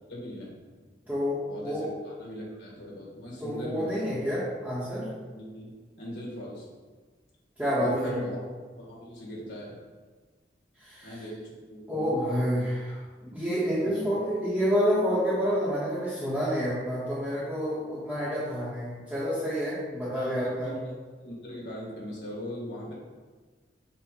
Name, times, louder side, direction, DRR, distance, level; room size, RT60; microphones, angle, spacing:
voice 1, 0.1-0.6 1.5-4.1 5.3-5.7 6.0-6.7 7.8-8.4 8.8-9.8 11.0-12.4 13.8-14.1 20.1-20.9 21.2-22.9, equal, 80° left, -4 dB, 1.9 m, -39 dB
voice 2, 1.1-1.9 3.4-5.1 7.6-8.3 10.8-11.2 11.9-20.7, equal, 10° right, -11 dB, 1.1 m, -29 dB
7.2 x 2.5 x 5.4 m, 1.4 s
head